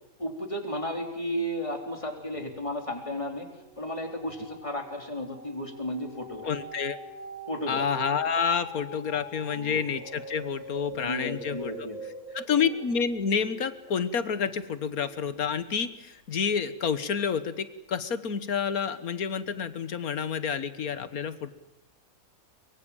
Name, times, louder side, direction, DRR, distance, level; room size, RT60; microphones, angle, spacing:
voice 1, 0.2-3.5 3.8-6.5 7.5-7.8 9.5-9.8 10.9-12.0 12.3-12.4, equal, 20° left, 3 dB, 3.8 m, -34 dB
sound 1, 2.2-2.8 3.1-15.6 16.2-16.3, right 2 dB, 80° right, 8.5 m, -45 dB
voice 2, 6.4-7.0 7.7-11.7 12.3-21.5, left 6 dB, 80° left, 13 dB, 1.8 m, -29 dB
23.5 x 23.5 x 8.9 m, 0.90 s
omnidirectional pair, 1.5 m